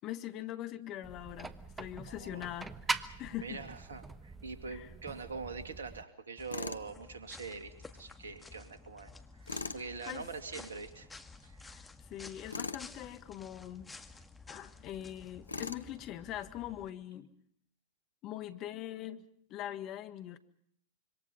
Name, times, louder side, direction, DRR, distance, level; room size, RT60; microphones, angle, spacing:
voice 1, 0.0-1.5 1.8-2.7 3.2-3.6 4.7-4.9 10.1-10.3 11.6-13.9 14.5-17.3 18.2-19.2 19.5-20.4, left 12 dB, 35° left, 1.6 m, -42 dB
sound 1, 1.0-6.0, right 3 dB, 15° right, 1.2 m, -42 dB
voice 2, 2.1-2.4 3.4-11.1 11.4-11.7, right 4 dB, 75° right, 2.5 m, -44 dB
sound 2, 6.4-16.9, left 3 dB, 10° left, 1.7 m, -53 dB
Tools, 6.5-6.9 9.5-9.8 12.5-12.9 15.5-15.9, left 4 dB, 85° left, 1.0 m, -39 dB
26.5 x 24.5 x 5.6 m
figure-of-eight pair, 95°, 0 cm